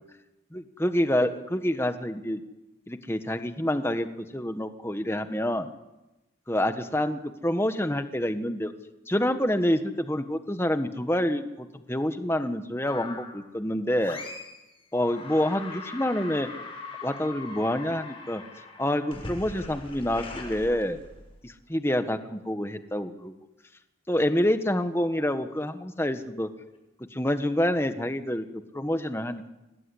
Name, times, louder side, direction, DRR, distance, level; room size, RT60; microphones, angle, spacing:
voice 1, 0.5-2.4 2.9-5.7 6.5-8.7 9.1-14.2 14.9-16.5 17.0-18.4 18.8-21.0 21.4-23.3 24.1-26.5 27.1-29.5, left 1 dB, 10° left, 9 dB, 1.4 m, -27 dB
sound 1, 12.9-13.4 14.0-14.6 14.9-21.4, left 3 dB, 30° left, 6.8 m, -41 dB
26.5 x 19.0 x 9.9 m, 1.0 s
head